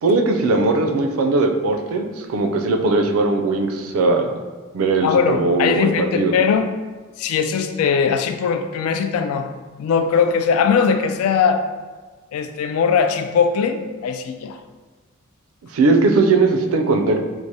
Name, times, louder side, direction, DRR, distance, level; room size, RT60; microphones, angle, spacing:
voice 1, 0.0-4.3 4.7-6.3 15.7-17.2, right 3 dB, 70° right, 4 dB, 0.4 m, -19 dB
voice 2, 5.0-6.7 7.2-9.5 9.8-11.6 12.3-14.6, left 6 dB, 80° left, 12 dB, 0.3 m, -20 dB
4.5 x 2.0 x 2.7 m, 1.4 s
head